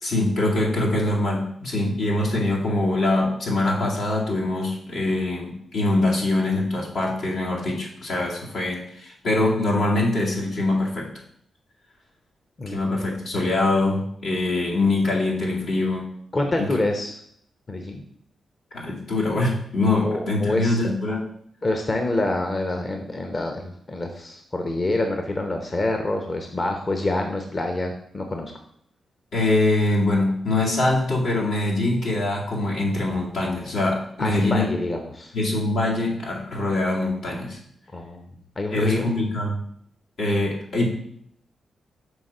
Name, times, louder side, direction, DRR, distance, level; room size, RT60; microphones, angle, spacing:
voice 1, 0.0-11.1 12.7-16.1 16.6-16.7 18.7-21.2 29.3-34.7 35.3-37.6 38.7-39.6 40.2-40.9, left 2 dB, 85° left, -5 dB, 2.2 m, -23 dB
voice 2, 12.6-13.0 16.3-17.2 17.7-18.0 20.0-20.8 21.6-28.5 34.2-35.3 37.9-38.3 38.6-39.1, left 2 dB, 40° left, 4 dB, 0.8 m, -27 dB
6.3 x 3.6 x 5.3 m, 0.68 s
cardioid pair, 70°, 0 cm